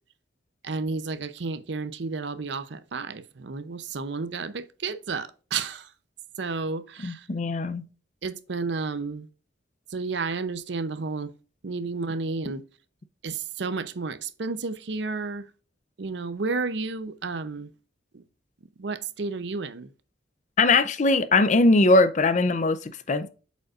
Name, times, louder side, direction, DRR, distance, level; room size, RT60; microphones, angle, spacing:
voice 1, 0.6-5.9 6.4-7.3 8.2-9.3 9.9-11.3 11.6-12.6 13.2-15.4 16.0-17.7 18.1-18.2 18.8-19.9, right 4 dB, 65° right, 0.6 m, -31 dB
voice 2, 7.0-7.9 20.6-23.3, left 2 dB, 40° left, 0.5 m, -21 dB
7.8 x 5.2 x 2.4 m
head